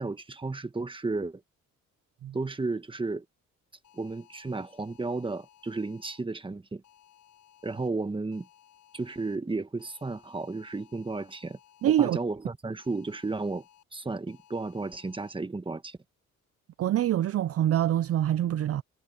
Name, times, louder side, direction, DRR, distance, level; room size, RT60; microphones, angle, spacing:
voice 1, 0.0-1.4 2.3-3.2 3.9-6.8 7.6-8.5 8.9-11.6 11.9-13.6 13.9-16.0, right 3 dB, 15° right, 1.5 m, -33 dB
sound 1, 3.8-6.2 6.8-7.9 8.3-9.4 9.8-12.2 12.8-13.8 14.3-15.3, left 11 dB, 80° left, 5.3 m, -59 dB
voice 2, 11.8-12.2 16.8-18.8, right 11 dB, 50° right, 0.5 m, -25 dB
cardioid pair, 90°, 30 cm